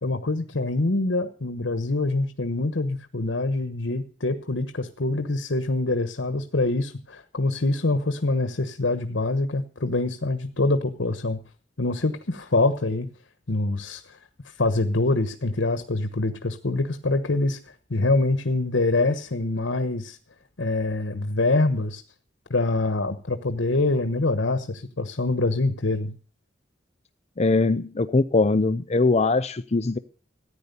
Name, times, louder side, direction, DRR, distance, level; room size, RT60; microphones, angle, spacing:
voice 1, 0.0-11.4 11.8-13.1 13.5-14.2 14.4-20.2 20.6-22.0 22.5-26.1, left 2 dB, 80° left, 1.2 m, -25 dB
voice 2, 27.4-30.0, left 3 dB, 35° left, 0.6 m, -21 dB
14.5 x 9.9 x 6.9 m
head